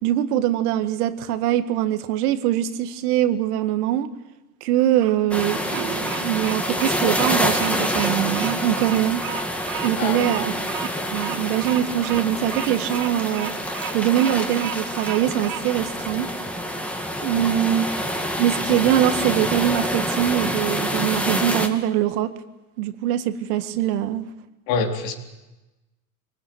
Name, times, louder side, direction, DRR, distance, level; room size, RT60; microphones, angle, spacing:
voice 1, 0.0-4.1 4.6-9.2 9.8-10.5 11.1-13.5 13.9-16.3 17.2-17.9 18.4-22.3 22.8-24.3, right 12 dB, 70° right, 10 dB, 1.9 m, -23 dB
Bird vocalization bird call bird song, 4.8-15.6, right 9 dB, 45° right, 2.7 m, -34 dB
sound 1, 5.3-21.7, equal, 5° left, 2.4 m, -27 dB
voice 2, 10.0-10.3 17.3-17.5 24.7-25.1, left 5 dB, 65° left, 4 dB, 3.9 m, -26 dB
24.5 x 19.0 x 9.2 m, 1.1 s
supercardioid pair, 110°, 47 cm